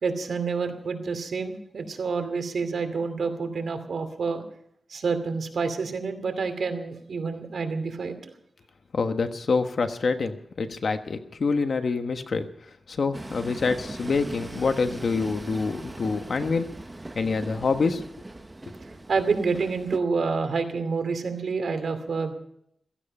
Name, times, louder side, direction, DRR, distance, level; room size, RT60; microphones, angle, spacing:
voice 1, 0.0-4.4 4.9-8.3 19.1-22.3, right 4 dB, 80° right, 7 dB, 2.5 m, -28 dB
voice 2, 8.9-12.5 12.9-16.8 17.1-18.0 18.7-18.8, left 4 dB, 65° left, 8 dB, 1.3 m, -26 dB
Train, 13.1-20.0, right 2 dB, 20° right, 1.0 m, -39 dB
16.0 x 15.5 x 5.5 m, 0.71 s
wide cardioid pair, 95°, 0 cm